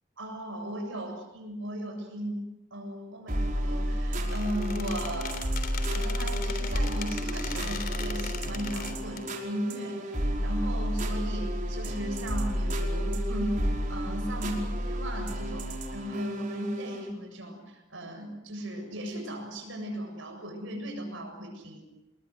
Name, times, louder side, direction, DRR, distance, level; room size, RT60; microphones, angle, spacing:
voice 1, 0.2-2.4 2.7-5.4 5.9-21.8, equal, 70° right, 3 dB, 7.5 m, -36 dB
sound 1, 3.3-17.1, equal, 40° right, 5.2 m, -31 dB
Squeak, 4.2-9.3, left 6 dB, 50° left, 3.5 m, -39 dB
29.0 x 21.5 x 8.1 m, 0.94 s
head